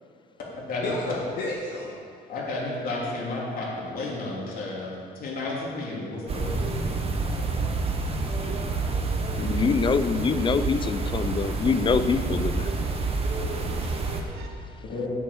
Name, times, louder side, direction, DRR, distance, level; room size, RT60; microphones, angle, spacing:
voice 1, 0.6-2.0 13.5-14.2, left 2 dB, 75° left, -4 dB, 1.8 m, -34 dB
voice 2, 2.3-6.5 8.8-8.9 14.8-15.1, left 2 dB, 60° left, -4 dB, 3.3 m, -32 dB
sound 1, 6.3-14.2, right 3 dB, 35° right, 1.2 m, -28 dB
voice 3, 9.4-12.8, left 5 dB, 30° left, 11 dB, 0.6 m, -25 dB
voice 4, 12.8-14.9, right 4 dB, 70° right, 3 dB, 1.4 m, -45 dB
8.6 x 8.3 x 7.2 m, 2.3 s
cardioid pair, 110°, 17 cm